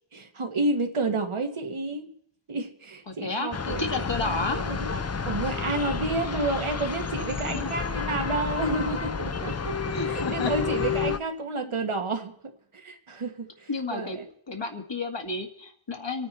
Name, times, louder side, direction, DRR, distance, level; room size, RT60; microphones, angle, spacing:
voice 1, 0.1-2.1 2.5-4.0 4.5-5.0 5.2-9.7 10.1-14.2, right 2 dB, 85° right, 4 dB, 1.6 m, -30 dB
voice 2, 3.1-5.3 7.4-7.7 9.9-10.5 11.6-11.7 13.7-14.2 14.5-16.3, left 3 dB, 60° left, 4 dB, 2.1 m, -32 dB
sound 1, 3.5-11.2, left 5 dB, 30° left, 0.6 m, -30 dB
26.0 x 9.3 x 4.2 m, 0.67 s
wide cardioid pair, 40°, 48 cm